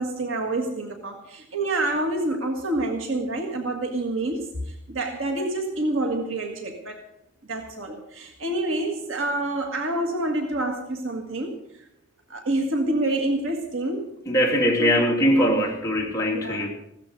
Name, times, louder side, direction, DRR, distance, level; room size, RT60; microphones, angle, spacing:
voice 1, 0.0-7.0 7.5-11.6 12.3-14.1 14.8-15.1 16.3-16.7, right 2 dB, 70° right, 3 dB, 1.7 m, -27 dB
voice 2, 14.3-16.7, equal, 15° left, -2 dB, 2.8 m, -21 dB
16.0 x 13.5 x 5.3 m, 0.80 s
head